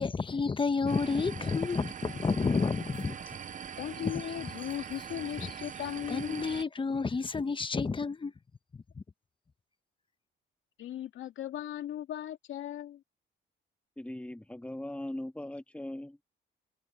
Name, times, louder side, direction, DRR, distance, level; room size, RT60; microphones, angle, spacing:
voice 1, 0.0-3.4 5.4-5.5 6.1-8.3 8.7-9.0, left 4 dB, 25° left, 1.1 m, -30 dB
sound 1, 0.9-6.6, right 8 dB, 40° right, 0.8 m, -42 dB
voice 2, 3.8-6.5 10.8-13.0, left 11 dB, 75° left, 2.5 m, -38 dB
voice 3, 14.0-16.2, left 1 dB, 5° left, 1.9 m, -39 dB
cardioid pair, 90°, 20 cm